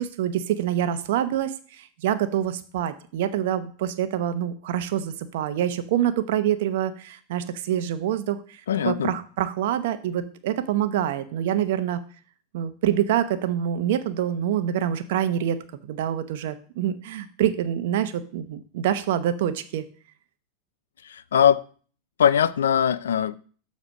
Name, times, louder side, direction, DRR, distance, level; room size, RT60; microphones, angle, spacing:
voice 1, 0.0-12.0 12.5-19.9, right 10 dB, 70° right, 0.8 m, -26 dB
voice 2, 8.7-9.1 21.0-21.6 22.2-23.4, left 8 dB, 85° left, 0.4 m, -21 dB
6.9 x 4.2 x 6.1 m
hypercardioid pair, 105°, 0 cm